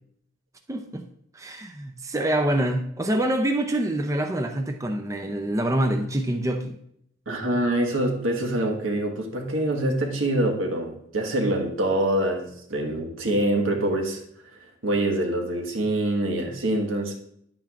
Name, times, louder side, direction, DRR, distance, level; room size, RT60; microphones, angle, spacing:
voice 1, 0.7-1.0 1.3-6.8, right 1 dB, 15° right, 5 dB, 0.5 m, -26 dB
voice 2, 7.3-14.2 14.8-17.1, right 1 dB, 90° right, 2 dB, 1.5 m, -25 dB
10.0 x 8.9 x 2.5 m, 0.71 s
head